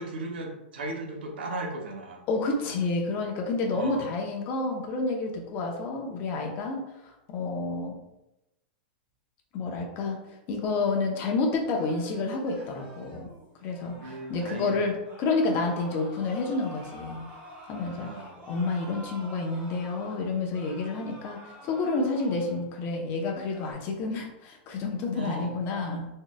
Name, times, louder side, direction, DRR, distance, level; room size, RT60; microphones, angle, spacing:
voice 1, 0.0-2.2 2.6-2.7 3.7-4.1 14.0-15.0 18.0-18.4 25.1-25.6, right 2 dB, 75° right, 2 dB, 0.9 m, -36 dB
voice 2, 2.3-8.0 9.5-10.2 10.5-13.3 13.6-14.9 15.2-17.2 17.7-18.1 18.5-26.1, left 3 dB, 40° left, 1 dB, 0.8 m, -29 dB
sound 1, 11.7-14.5 15.0-22.9 23.3-23.7, equal, 15° right, 1.4 m, -48 dB
4.0 x 3.1 x 2.3 m, 0.91 s
hypercardioid pair, 120°, 5 cm